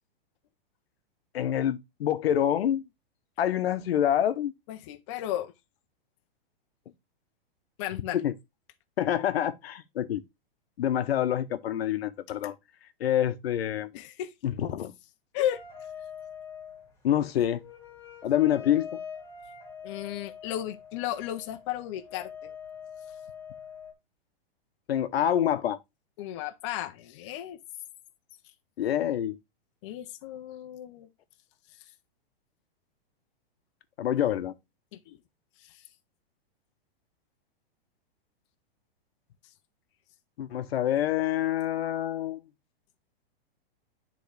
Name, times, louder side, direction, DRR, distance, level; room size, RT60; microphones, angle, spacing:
voice 1, 1.3-2.8 3.4-4.5 8.1-8.3 9.0-10.2 10.8-12.5 13.0-13.9 14.4-14.9 17.0-17.6 18.2-19.0 24.9-25.8 28.8-29.4 34.0-34.5 40.4-42.4, left 11 dB, 80° left, 0.9 m, -26 dB
voice 2, 4.7-5.5 7.8-8.2 13.9-14.3 15.3-15.6 19.8-22.5 26.2-27.6 29.8-31.1 35.1-35.2 35.6-35.7, left 12 dB, 30° left, 0.5 m, -34 dB
sound 1, 15.5-23.9, left 7 dB, 10° left, 1.6 m, -44 dB
9.5 x 3.8 x 3.3 m
hypercardioid pair, 155°, 30 cm